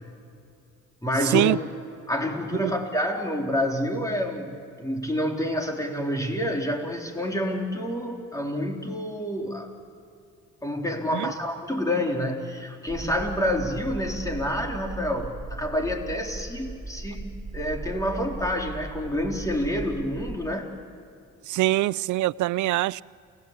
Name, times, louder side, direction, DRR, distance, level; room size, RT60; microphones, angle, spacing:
voice 1, 1.0-1.6 2.1-9.7 10.6-20.7, left 1 dB, 10° left, 4.0 m, -28 dB
sound 1, 12.9-20.4, right 3 dB, 20° right, 4.3 m, -38 dB
voice 2, 21.5-23.0, right 17 dB, 75° right, 0.5 m, -23 dB
29.0 x 18.0 x 8.4 m
cardioid pair, 90°, 30 cm